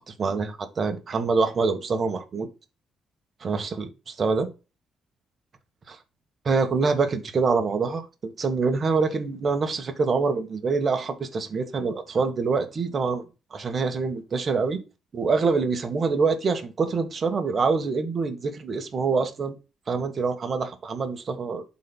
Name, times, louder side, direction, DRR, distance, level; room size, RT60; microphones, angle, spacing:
voice 1, 0.1-2.5 3.4-4.5 5.9-6.0 6.4-13.2 13.5-14.8 15.1-19.5 19.9-21.6, right 4 dB, 45° right, 1.3 m, -25 dB
12.0 x 4.2 x 2.2 m
cardioid pair, 90°, 0 cm